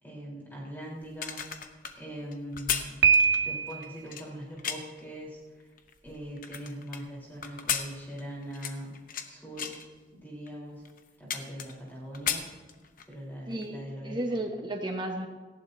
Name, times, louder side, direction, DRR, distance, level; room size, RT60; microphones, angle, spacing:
voice 1, 0.0-1.4 1.9-3.0 3.4-5.4 6.0-8.9 9.3-9.7 10.1-10.8 11.2-12.4 13.1-14.2, equal, 10° left, -5 dB, 4.1 m, -41 dB
sound 1, 1.0-5.0 5.6-7.0 7.4-9.3 9.6-9.9 10.5-10.6 10.8-11.9 12.1-13.1 13.5-13.7, left 8 dB, 50° left, 1.0 m, -35 dB
Piano, 3.0-4.0, right 6 dB, 75° right, 1.0 m, -23 dB
voice 2, 13.5-15.3, right 1 dB, 25° right, 3 dB, 1.3 m, -33 dB
18.0 x 15.5 x 2.8 m, 1.3 s
head